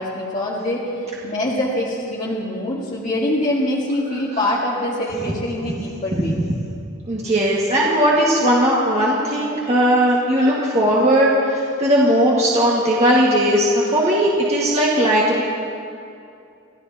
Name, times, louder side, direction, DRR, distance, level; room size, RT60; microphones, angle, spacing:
voice 1, 0.0-6.4, left 1 dB, 35° left, -6 dB, 1.7 m, -24 dB
voice 2, 7.1-15.4, equal, 30° right, -5 dB, 1.7 m, -17 dB
28.5 x 14.0 x 2.8 m, 2.5 s
head